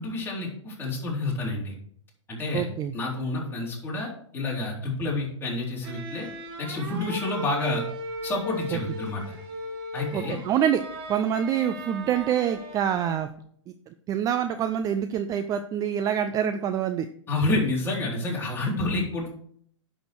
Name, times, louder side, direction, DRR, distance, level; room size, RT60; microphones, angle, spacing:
voice 1, 0.0-1.7 2.3-2.7 2.9-6.3 6.6-7.8 8.2-9.2 9.9-10.4 17.3-19.3, left 2 dB, 15° left, -4 dB, 4.0 m, -29 dB
voice 2, 2.5-2.9 8.7-8.8 10.1-10.8 11.1-13.3 14.1-17.1, right 9 dB, 20° right, 9 dB, 0.5 m, -26 dB
sound 1, 5.8-13.3, right 2 dB, 45° right, 2.6 m, -37 dB
10.5 x 6.3 x 4.6 m, 0.62 s
figure-of-eight pair, 115°, 16 cm